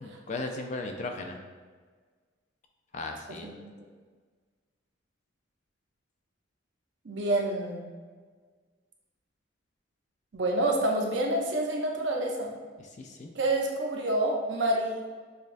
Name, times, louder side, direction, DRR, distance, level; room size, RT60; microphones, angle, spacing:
voice 1, 0.0-1.4 2.9-3.5 12.8-13.3, left 2 dB, 35° left, 3 dB, 0.4 m, -37 dB
voice 2, 7.0-7.9 10.3-12.5 13.3-15.0, right 1 dB, 60° right, 0 dB, 0.6 m, -28 dB
6.8 x 2.3 x 2.5 m, 1.5 s
head